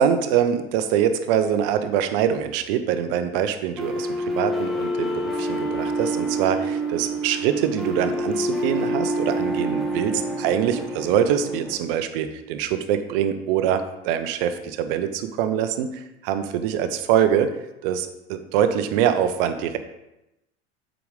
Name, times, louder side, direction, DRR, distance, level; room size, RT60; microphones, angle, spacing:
voice 1, 0.0-17.6 17.8-19.8, right 9 dB, 55° right, 10 dB, 0.9 m, -24 dB
sound 1, 3.8-11.8, right 1 dB, ahead, 1.7 m, -27 dB
7.9 x 5.2 x 5.1 m, 0.91 s
figure-of-eight pair, 75°, 33 cm